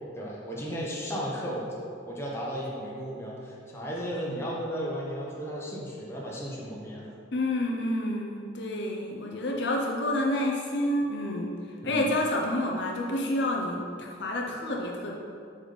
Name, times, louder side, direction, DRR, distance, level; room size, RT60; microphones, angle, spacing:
voice 1, 0.1-1.7 2.0-7.1 11.8-12.1, equal, 15° left, -5 dB, 0.9 m, -34 dB
voice 2, 7.3-11.5 11.8-15.1, left 1 dB, 60° left, -1 dB, 0.6 m, -29 dB
5.0 x 4.0 x 5.1 m, 2.4 s
head